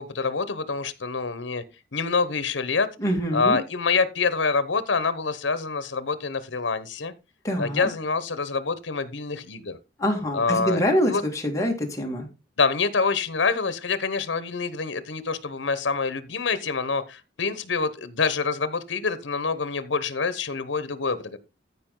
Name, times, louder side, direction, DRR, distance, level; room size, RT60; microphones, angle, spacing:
voice 1, 0.0-1.6 1.9-2.9 3.3-7.1 7.6-9.8 10.3-11.2 12.6-21.4, left 4 dB, 80° left, 1.0 m, -26 dB
voice 2, 3.0-3.6 7.4-7.9 10.0-12.3, equal, 15° left, 2.3 m, -25 dB
14.0 x 4.9 x 3.8 m
head